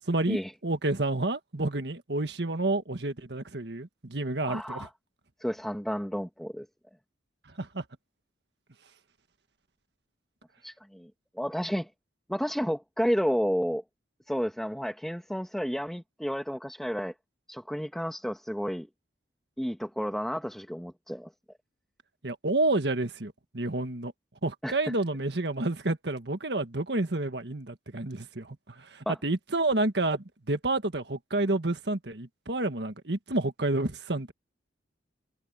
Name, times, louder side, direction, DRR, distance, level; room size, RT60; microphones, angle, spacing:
voice 1, 0.1-4.9 7.6-7.8 22.2-24.1 24.4-34.3, right 2 dB, 65° right, 1.6 m, -29 dB
voice 2, 4.5-4.9 5.4-6.6 10.6-11.1 11.4-11.9 12.3-13.8 14.3-17.1 17.5-18.9 19.6-21.3 24.6-24.8 29.0-29.2, equal, ahead, 1.7 m, -31 dB
head